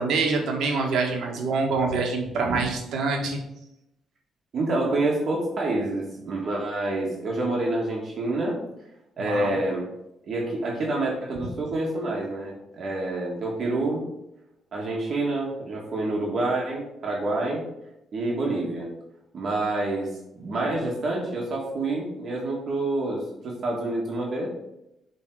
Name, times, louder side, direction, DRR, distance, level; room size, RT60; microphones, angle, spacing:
voice 1, 0.0-3.4 9.2-9.5, right 4 dB, 80° right, 1 dB, 1.6 m, -25 dB
voice 2, 4.5-8.6 9.2-9.8 10.2-14.1 14.7-17.6 18.1-18.9 19.3-24.5, right 2 dB, 50° right, -2 dB, 1.7 m, -27 dB
7.4 x 3.8 x 4.8 m, 0.86 s
cardioid pair, 90°, 0 cm